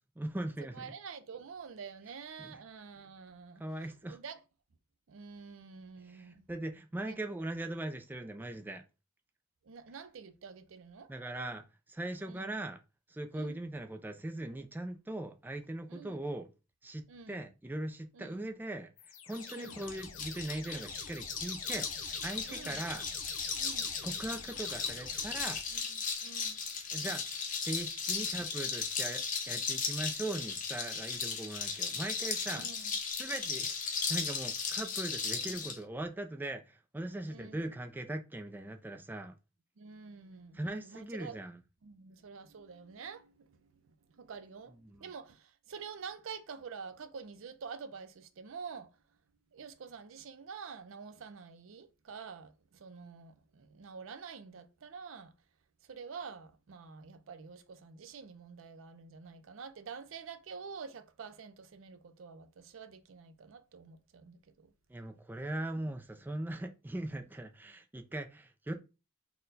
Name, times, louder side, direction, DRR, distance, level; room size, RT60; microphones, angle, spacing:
voice 1, 0.2-0.9 2.4-2.6 3.6-4.2 6.0-8.8 11.1-12.8 13.1-16.5 16.8-23.1 24.0-25.6 26.9-27.2 27.5-39.3 40.5-41.6 44.8-45.1 64.9-68.7, right 1 dB, 10° right, 0.3 m, -40 dB
voice 2, 0.7-3.6 4.0-4.4 5.1-6.5 7.1-7.2 9.7-11.1 12.3-12.5 13.3-13.6 15.9-16.1 17.1-17.4 18.2-18.5 19.5-19.8 22.5-22.8 23.6-23.9 26.2-26.6 32.5-32.9 35.4-35.5 37.3-37.6 39.8-41.4 41.8-43.5 44.2-44.7 45.0-48.9 49.5-55.3 55.9-64.7, right 5 dB, 70° right, 0.5 m, -47 dB
sound 1, 19.0-25.8, left 5 dB, 75° left, 0.7 m, -50 dB
sound 2, 19.3-35.8, left 5 dB, 40° left, 0.9 m, -36 dB
4.2 x 2.2 x 3.8 m
head